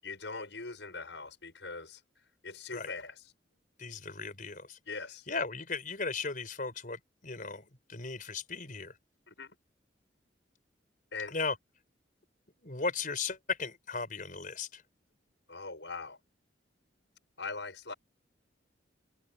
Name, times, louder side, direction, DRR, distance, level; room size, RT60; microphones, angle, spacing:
voice 1, 0.0-2.0 2.4-3.2 4.9-5.3 9.3-9.5 11.1-11.4 15.5-16.2 17.4-17.9, left 4 dB, 70° left, 7.5 m, -41 dB
voice 2, 3.8-4.8 5.3-9.0 11.3-11.6 12.6-14.8, left 4 dB, 45° left, 5.5 m, -36 dB
open air
head